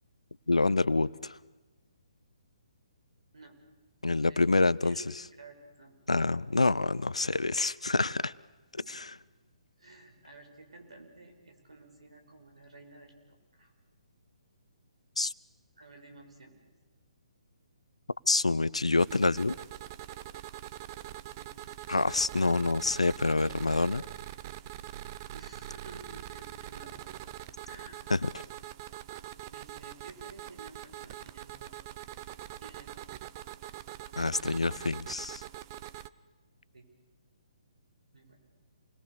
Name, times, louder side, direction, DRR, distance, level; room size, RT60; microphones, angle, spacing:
voice 1, 0.5-1.4 4.0-5.0 6.1-8.3 8.7-9.1 15.2-15.3 18.3-19.6 21.9-24.0 28.1-28.3 34.2-35.4, left 3 dB, 80° left, 20 dB, 0.7 m, -27 dB
voice 2, 5.4-6.0 8.8-9.0 9.8-13.7 15.8-16.6 21.4-21.8 25.3-27.1 27.6-28.0 29.5-31.7 32.6-33.1 36.7-36.9 38.1-38.4, right 2 dB, 70° right, 4 dB, 5.6 m, -52 dB
sound 1, 19.0-36.1, right 13 dB, 30° right, 0.7 m, -44 dB
28.0 x 21.0 x 6.8 m, 1.2 s
figure-of-eight pair, 135°, 3 cm